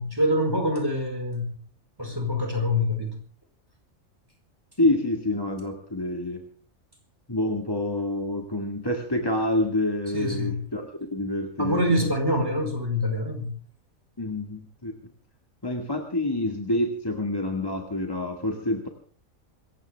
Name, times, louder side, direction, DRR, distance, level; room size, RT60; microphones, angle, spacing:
voice 1, 0.0-1.5 2.0-3.2 10.1-10.6 11.6-13.5, left 1 dB, 15° right, 3 dB, 4.6 m, -25 dB
voice 2, 4.8-6.4 7.3-12.1 14.2-14.9 15.6-18.9, left 1 dB, 20° left, 2 dB, 1.9 m, -27 dB
27.5 x 15.0 x 3.5 m, 0.43 s
omnidirectional pair, 1.4 m